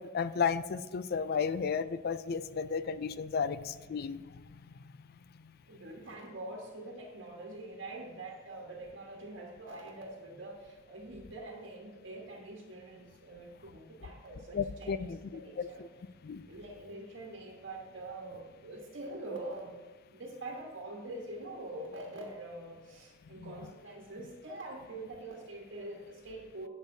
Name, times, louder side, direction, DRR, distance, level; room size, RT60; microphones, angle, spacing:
voice 1, 0.0-4.2 4.5-4.6 14.5-15.0 15.6-15.7 16.2-16.4 23.4-23.5, left 6 dB, 50° left, 14 dB, 0.4 m, -33 dB
voice 2, 5.6-15.8 16.5-19.8 20.1-26.7, right 2 dB, 65° right, -1 dB, 1.3 m, -44 dB
11.5 x 8.8 x 2.7 m, 1.3 s
head